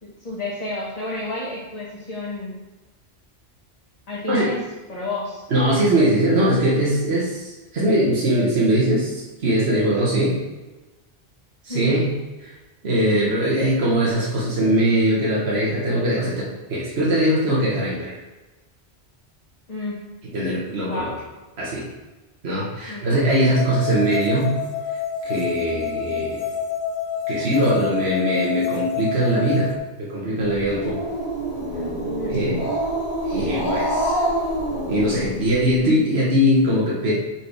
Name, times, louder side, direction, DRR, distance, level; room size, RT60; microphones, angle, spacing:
voice 1, 0.0-2.6 4.1-4.6 4.9-5.4 11.7-12.0 19.7-20.0 20.8-21.2 22.9-23.1 32.1-32.4, left 1 dB, 40° left, -7 dB, 1.4 m, -30 dB
voice 2, 5.5-10.4 11.6-12.1 12.4-12.5 12.8-18.2 20.3-21.1 21.6-21.9 22.4-24.5 25.2-26.4 27.3-29.7 30.0-31.0 32.3-32.6 33.2-34.2 34.9-37.2, right 1 dB, 70° right, -6 dB, 1.6 m, -21 dB
sound 1, 23.3-29.8, left 7 dB, 70° left, 0.9 m, -28 dB
Growling, 30.4-35.8, right 1 dB, 20° left, 2.3 m, -26 dB
6.0 x 4.5 x 4.9 m, 1.1 s
omnidirectional pair, 1.1 m